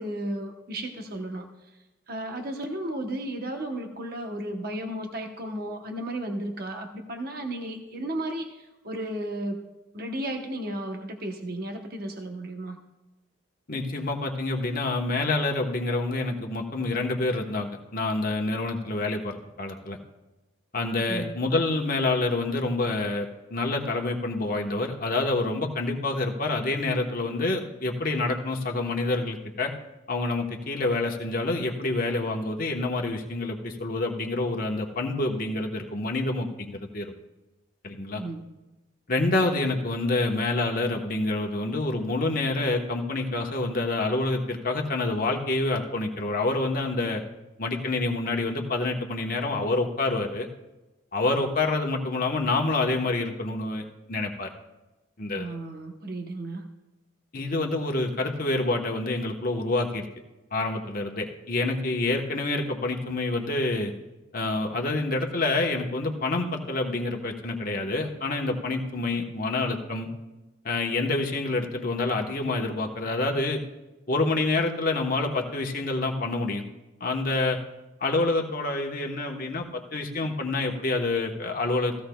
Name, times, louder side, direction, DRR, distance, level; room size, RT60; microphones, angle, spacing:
voice 1, 0.0-1.5 2.1-9.7 9.9-12.8 21.1-21.4 38.1-38.6 55.3-56.6, right 1 dB, 50° right, 4 dB, 1.0 m, -34 dB
voice 2, 13.7-20.0 20.7-29.7 30.1-37.1 37.8-38.2 39.1-47.2 47.6-50.5 51.1-54.5 55.2-55.4 57.3-60.0 60.5-63.9 64.3-70.1 70.6-73.6 74.1-76.6 77.0-77.6 78.0-81.9, left 2 dB, 45° left, 2 dB, 1.2 m, -27 dB
16.0 x 15.5 x 2.3 m, 1.1 s
head